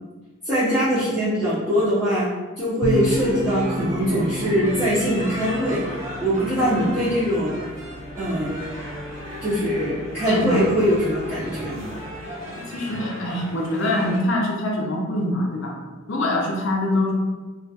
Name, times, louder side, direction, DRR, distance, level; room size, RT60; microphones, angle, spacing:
voice 1, 0.4-5.8 6.2-7.6 8.2-8.5 9.4-11.8, equal, 10° right, -14 dB, 0.5 m, -22 dB
sound 1, 2.8-12.2, equal, 65° right, 0.4 m, -34 dB
sound 2, 2.9-14.2, equal, 35° right, 1.0 m, -36 dB
voice 2, 10.3-10.7 11.0-11.1 12.6-15.7 16.1-17.1, left 1 dB, 60° left, -1 dB, 0.5 m, -24 dB
2.3 x 2.2 x 2.6 m, 1.3 s
head